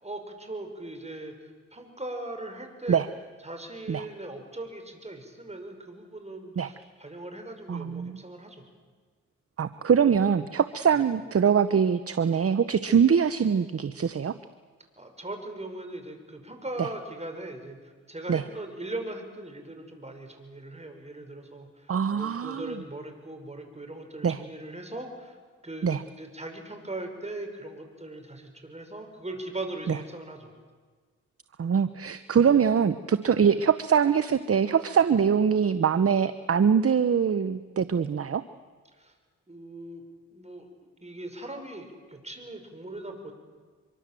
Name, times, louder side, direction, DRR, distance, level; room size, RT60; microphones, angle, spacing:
voice 1, 0.0-1.3 1.7-3.0 3.4-8.6 10.9-11.0 15.0-17.8 18.1-25.4 25.6-30.5 39.0-39.1 39.5-40.0 40.3-40.7 41.0-43.3, right 2 dB, 20° right, 5 dB, 5.8 m, -39 dB
voice 2, 7.7-8.2 9.6-14.3 16.8-16.9 18.3-18.4 21.9-22.7 24.2-24.4 25.8-26.0 29.9-30.0 31.6-38.4, right 7 dB, 45° right, 13 dB, 0.9 m, -23 dB
25.0 x 23.5 x 7.7 m, 1.5 s
cardioid pair, 55°, 32 cm